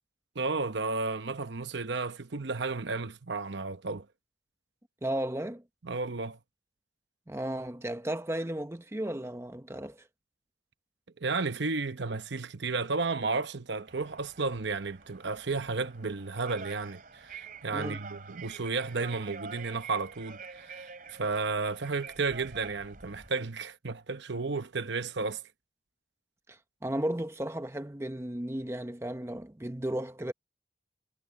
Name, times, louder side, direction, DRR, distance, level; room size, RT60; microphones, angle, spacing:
voice 1, 0.3-4.1 5.8-6.4 11.2-25.4, right 4 dB, 65° right, 0.9 m, -33 dB
voice 2, 5.0-5.6 7.3-10.1 17.7-18.0 26.5-30.3, right 1 dB, 15° right, 0.7 m, -34 dB
sound 1, 13.9-23.3, right 5 dB, 45° right, 4.3 m, -47 dB
head